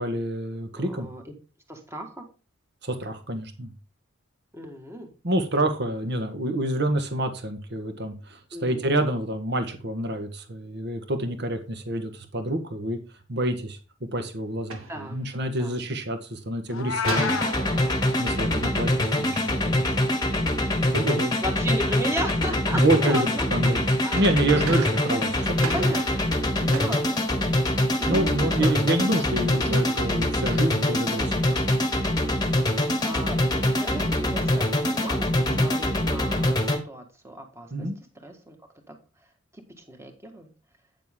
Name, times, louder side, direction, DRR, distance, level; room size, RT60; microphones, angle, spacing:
voice 1, 0.0-1.1 2.8-3.7 5.2-13.0 13.3-13.8 14.1-17.3 18.2-19.9 20.9-21.3 22.7-23.8 24.1-25.9 28.1-31.7 35.5-35.7 37.7-38.0, right 1 dB, 55° right, 1.7 m, -27 dB
voice 2, 0.7-1.3 1.7-2.2 4.5-5.1 8.5-9.1 14.9-15.2 15.6-15.8 21.4-23.5 24.0-24.4 24.6-24.8 25.3-28.8 29.6-30.0 33.0-37.9 38.2-38.6 38.9-39.0 39.5-40.5, equal, 15° right, 1.8 m, -36 dB
sound 1, 14.5-15.7 17.0-19.5 23.9-28.0, right 3 dB, 90° right, 1.9 m, -38 dB
Meow, 16.7-17.5, left 7 dB, 70° left, 0.6 m, -28 dB
sound 2, 17.0-36.8, left 1 dB, 20° left, 1.3 m, -24 dB
9.3 x 7.5 x 3.7 m
head